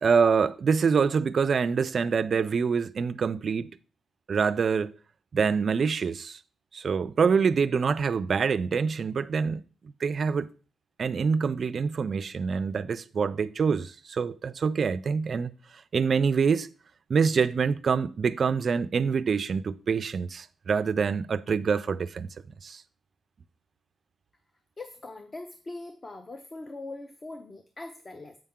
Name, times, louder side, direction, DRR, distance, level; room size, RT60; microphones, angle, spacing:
voice 1, 0.0-3.7 4.3-4.9 5.3-6.4 6.7-9.6 10.0-10.5 11.0-15.5 15.9-16.7 17.1-22.3 22.6-22.8, right 5 dB, 45° right, 0.3 m, -25 dB
voice 2, 24.8-28.4, left 2 dB, 25° left, 0.5 m, -41 dB
7.7 x 5.6 x 3.6 m
wide cardioid pair, 165°, 0 cm